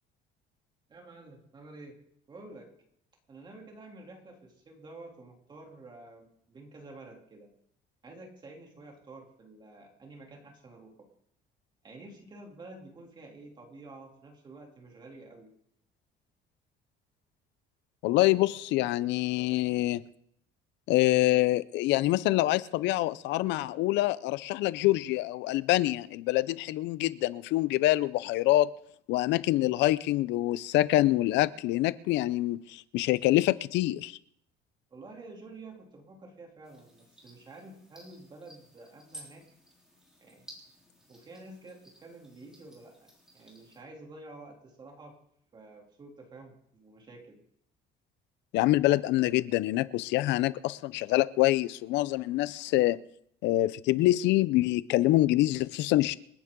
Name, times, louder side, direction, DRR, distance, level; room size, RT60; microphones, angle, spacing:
voice 1, 0.9-2.0 2.3-2.7 3.3-7.5 8.0-11.1 11.8-15.5 18.3-18.6 19.0-19.2 34.9-39.5 40.2-40.5 41.1-45.2 45.5-47.4 49.1-49.3, right 2 dB, 25° right, 3.0 m, -50 dB
voice 2, 18.0-20.0 20.9-28.7 29.1-34.2 48.5-53.0 53.4-56.2, left 16 dB, 70° left, 0.6 m, -26 dB
sound 1, 36.6-43.8, right 1 dB, 5° right, 3.5 m, -55 dB
28.0 x 9.6 x 3.8 m
cardioid pair, 170°, 19 cm